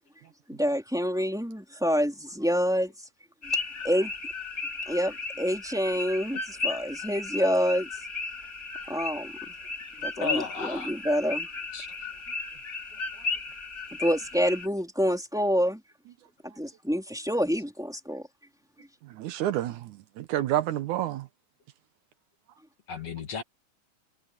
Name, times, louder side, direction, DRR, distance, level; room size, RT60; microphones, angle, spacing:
voice 1, 0.5-2.9 3.8-4.1 4.9-7.9 8.9-9.3 10.0-11.5 14.0-15.8 16.4-18.2, equal, ahead, 3.2 m, -27 dB
sound 1, 3.4-14.7, left 3 dB, 25° left, 3.1 m, -35 dB
voice 2, 10.2-10.9 11.7-11.9 22.9-23.4, left 6 dB, 55° left, 2.9 m, -34 dB
voice 3, 19.0-21.3, right 13 dB, 75° right, 2.3 m, -29 dB
omnidirectional pair, 3.6 m